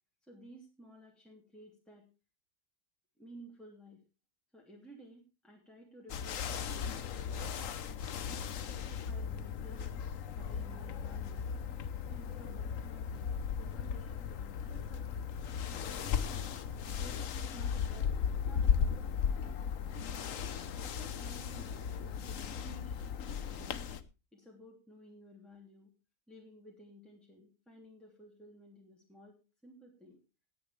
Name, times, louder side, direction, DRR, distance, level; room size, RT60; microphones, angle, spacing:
voice 1, 0.2-2.0 3.2-4.0 4.5-7.4 8.2-10.0 10.3-11.5 12.0-15.3 15.7-16.5 17.0-18.9 19.8-20.4 20.8-23.9 24.3-25.9 26.3-29.4 29.6-30.2, right 1 dB, ahead, -2 dB, 3.2 m, -55 dB
sound 1, 6.1-24.0, left 7 dB, 65° left, 1.3 m, -36 dB
17.5 x 10.0 x 3.4 m, 0.30 s
omnidirectional pair, 1.5 m